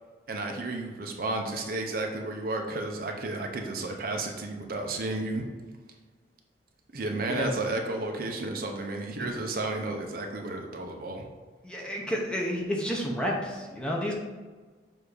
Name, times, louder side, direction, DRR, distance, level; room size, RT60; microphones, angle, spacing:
voice 1, 0.3-5.5 6.9-11.3, right 2 dB, 55° right, 2 dB, 0.8 m, -32 dB
voice 2, 11.6-14.1, equal, 5° left, -2 dB, 0.8 m, -30 dB
7.1 x 2.8 x 4.8 m, 1.4 s
head